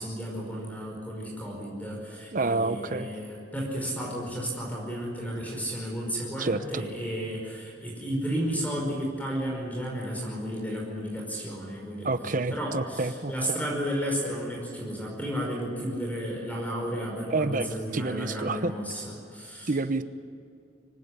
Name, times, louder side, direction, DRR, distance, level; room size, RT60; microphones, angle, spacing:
voice 1, 0.0-19.7, equal, 10° left, -2 dB, 5.3 m, -33 dB
voice 2, 2.3-3.1 6.4-6.8 12.0-13.6 17.3-17.7 17.9-18.7 19.7-20.0, right 3 dB, 50° right, 12 dB, 0.9 m, -28 dB
24.5 x 17.0 x 9.9 m, 2.5 s
head